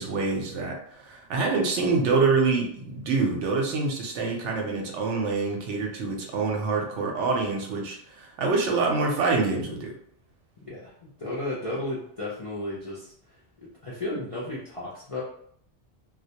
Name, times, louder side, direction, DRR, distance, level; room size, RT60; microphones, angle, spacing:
voice 1, 0.0-9.9, right 4 dB, 75° right, 1 dB, 0.9 m, -26 dB
voice 2, 10.6-15.2, left 1 dB, 55° left, -7 dB, 0.4 m, -34 dB
2.2 x 2.1 x 2.7 m, 0.65 s
omnidirectional pair, 1.2 m